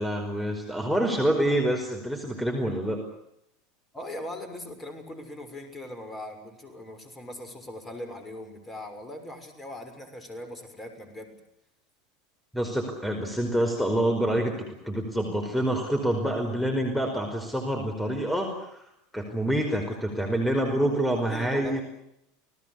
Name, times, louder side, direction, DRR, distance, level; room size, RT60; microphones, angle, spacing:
voice 1, 0.0-3.0 12.5-18.9 19.1-21.8, right 1 dB, 5° left, 4 dB, 5.1 m, -27 dB
voice 2, 3.9-11.4 19.7-19.8 21.1-21.8, left 1 dB, 20° left, 8 dB, 6.6 m, -40 dB
28.5 x 19.5 x 8.5 m, 0.79 s
figure-of-eight pair, 80°, 0 cm